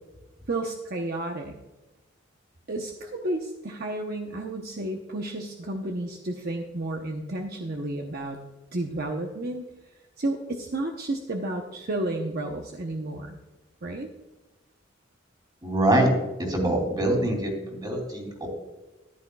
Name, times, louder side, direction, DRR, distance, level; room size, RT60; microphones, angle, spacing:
voice 1, 0.5-1.6 2.7-8.4 8.7-9.6 10.2-13.4 13.8-14.1, right 2 dB, 50° right, 3 dB, 0.8 m, -31 dB
voice 2, 15.6-16.1 16.4-18.5, right 1 dB, 20° right, 2 dB, 2.8 m, -24 dB
14.0 x 11.0 x 2.3 m, 1.1 s
head